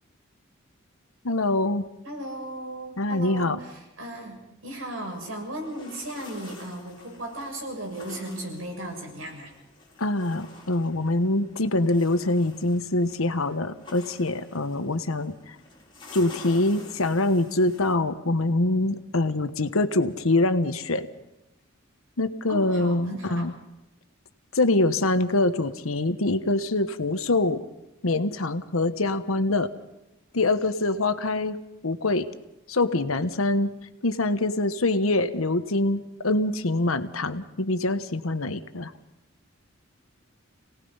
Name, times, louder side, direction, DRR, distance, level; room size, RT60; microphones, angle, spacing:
voice 1, 1.2-1.9 3.0-3.6 10.0-15.5 16.1-21.1 22.2-23.5 24.5-27.6 28.0-29.7 30.3-32.3 32.7-33.7 34.0-38.9, left 2 dB, 90° left, 10 dB, 1.2 m, -24 dB
voice 2, 2.0-9.5 22.5-23.5, right 1 dB, 80° right, 1 dB, 6.8 m, -36 dB
sound 1, 5.0-17.9, left 3 dB, 25° left, 5.0 m, -49 dB
28.0 x 18.5 x 5.6 m, 0.92 s
head